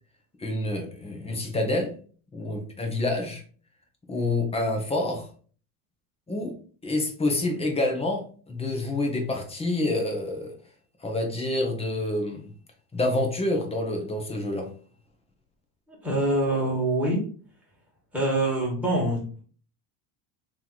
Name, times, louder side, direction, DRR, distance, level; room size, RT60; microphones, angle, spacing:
voice 1, 0.4-1.9 2.3-3.4 4.1-5.3 6.3-6.6 6.8-10.5 11.0-12.5 12.9-14.7, left 2 dB, 15° left, 2 dB, 0.9 m, -27 dB
voice 2, 15.9-17.2 18.1-19.4, right 1 dB, 5° right, -4 dB, 1.8 m, -25 dB
3.3 x 3.0 x 4.0 m, 0.43 s
cardioid pair, 130°, 43 cm